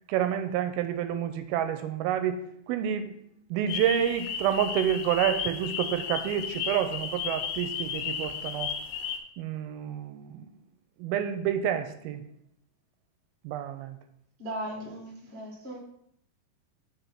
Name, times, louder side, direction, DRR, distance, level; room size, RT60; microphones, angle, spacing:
voice 1, 0.1-3.1 3.5-8.7 9.4-10.5 11.0-12.2 13.4-14.0, right 10 dB, 85° right, 9 dB, 2.4 m, -29 dB
sound 1, 3.7-9.2, left 7 dB, 90° left, 2.7 m, -34 dB
voice 2, 14.4-15.8, right 1 dB, 55° right, -2 dB, 0.7 m, -37 dB
5.3 x 4.6 x 5.7 m, 0.71 s
omnidirectional pair, 4.4 m